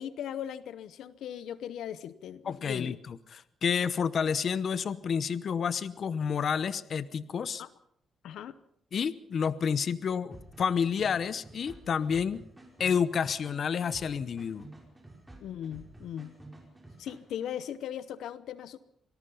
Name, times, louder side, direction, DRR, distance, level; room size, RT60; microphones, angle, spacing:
voice 1, 0.0-3.0 7.6-7.7 8.2-8.6 15.4-16.3 17.0-18.8, left 10 dB, 85° left, 15 dB, 0.8 m, -38 dB
voice 2, 2.4-7.6 8.9-12.4 12.8-14.7, left 7 dB, 55° left, 16 dB, 0.9 m, -30 dB
sound 1, 10.3-17.5, right 2 dB, 10° right, 5.2 m, -51 dB
25.5 x 19.0 x 5.5 m, 0.70 s
cardioid pair, 120°, 0 cm